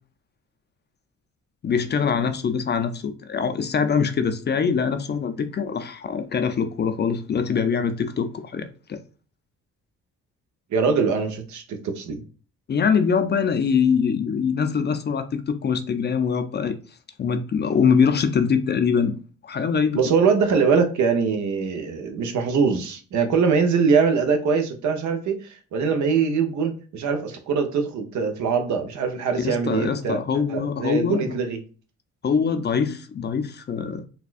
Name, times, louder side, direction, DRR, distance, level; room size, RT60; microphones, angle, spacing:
voice 1, 1.6-9.0 12.7-16.8 17.2-19.2 19.4-20.0 29.4-31.3 32.2-34.1, left 6 dB, 35° left, 0.4 m, -23 dB
voice 2, 10.7-12.2 19.9-30.2 30.5-31.6, right 5 dB, 70° right, 0.8 m, -22 dB
4.1 x 2.3 x 2.4 m
cardioid pair, 90°, 30 cm